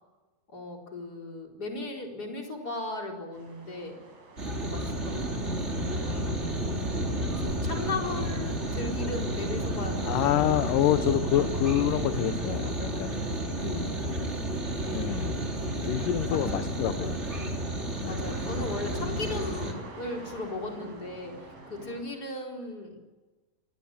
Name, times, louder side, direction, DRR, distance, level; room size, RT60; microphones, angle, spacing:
voice 1, 0.5-4.0 4.6-6.4 7.3-10.5 13.4-13.9 16.3-17.2 18.1-23.0, left 2 dB, 25° left, 1 dB, 4.6 m, -37 dB
sound 1, 3.3-22.0, right 2 dB, 65° right, 8.2 m, -48 dB
sound 2, 4.4-19.7, right 1 dB, 20° right, 3.0 m, -31 dB
voice 2, 10.0-13.2 13.6-13.9 14.9-15.3 15.8-17.2 17.9-18.2, left 11 dB, 70° left, 9 dB, 2.4 m, -27 dB
28.0 x 20.5 x 8.7 m, 1.2 s
omnidirectional pair, 4.2 m